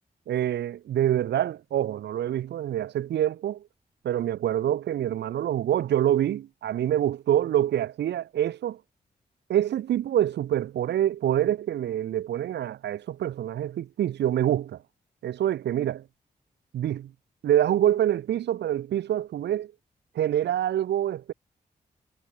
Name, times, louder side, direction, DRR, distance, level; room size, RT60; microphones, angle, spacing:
voice 1, 0.3-3.6 4.0-8.8 9.5-14.8 15.2-16.0 16.7-17.1 17.4-19.7 20.1-21.3, right 11 dB, 85° right, 1.0 m, -26 dB
supercardioid pair, 45°, 17 cm